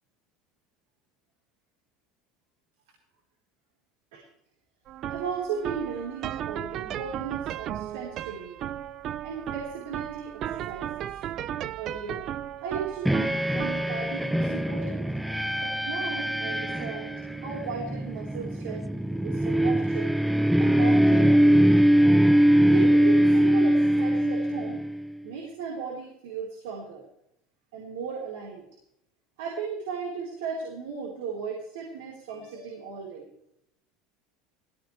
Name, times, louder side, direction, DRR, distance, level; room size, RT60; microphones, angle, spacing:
sound 1, 4.9-22.1, right 11 dB, 50° right, 0.6 m, -37 dB
voice 1, 5.1-8.6 9.2-11.1 11.8-12.2 12.6-15.1 15.6-18.9 19.2-20.2 20.6-21.8 22.7-24.8 25.2-27.0 27.7-28.7 29.4-33.3, right 6 dB, 90° right, -3 dB, 4.5 m, -36 dB
sound 2, 13.0-25.1, equal, ahead, 0.6 m, -22 dB
19.0 x 17.0 x 3.4 m, 0.78 s
supercardioid pair, 115°, 0 cm